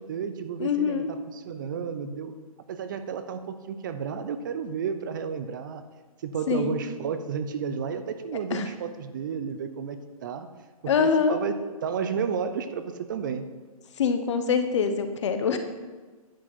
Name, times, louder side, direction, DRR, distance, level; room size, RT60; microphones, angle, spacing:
voice 1, 0.0-2.3 2.7-5.9 6.2-10.5 10.8-13.5, right 6 dB, 35° right, 10 dB, 0.5 m, -32 dB
voice 2, 0.6-1.1 6.5-6.8 8.5-8.6 10.9-11.4 14.0-15.6, left 6 dB, 50° left, 8 dB, 1.0 m, -24 dB
10.0 x 4.8 x 6.1 m, 1.3 s
hypercardioid pair, 160°, 19 cm